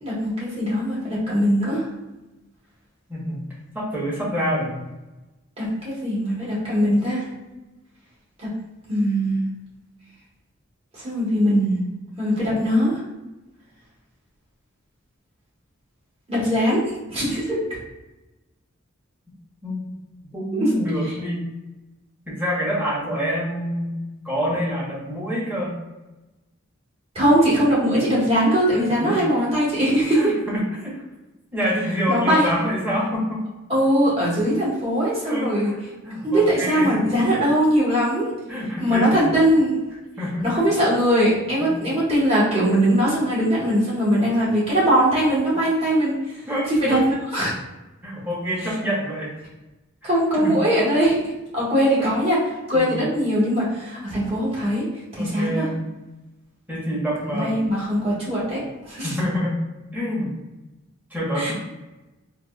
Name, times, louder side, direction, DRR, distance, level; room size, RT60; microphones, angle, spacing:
voice 1, 0.0-1.9 5.6-7.2 8.4-8.5 8.9-9.4 10.9-11.8 12.2-12.9 16.3-17.6 20.5-20.7 27.1-30.3 32.1-32.5 33.7-35.7 36.2-38.3 38.8-39.8 40.4-46.1 46.7-47.5 50.0-51.2 51.5-52.4 52.7-54.9 55.1-55.7 57.3-59.1 61.4-61.5, equal, 30° right, -8 dB, 1.3 m, -21 dB
voice 2, 3.1-3.4 3.7-4.8 12.4-12.5 19.6-20.0 20.3-21.4 22.3-24.0 24.2-25.7 29.0-29.2 30.1-31.0 31.5-33.4 35.2-35.8 36.0-37.1 38.5-39.4 40.2-40.7 41.6-41.7 46.5-47.0 48.0-49.3 50.0-50.1 50.4-50.5 51.7-52.1 52.7-52.9 55.2-55.8 56.7-57.6 59.0-59.5 59.9-60.3 61.1-61.5, equal, 10° right, -6 dB, 0.9 m, -26 dB
4.0 x 2.3 x 2.2 m, 1.1 s
head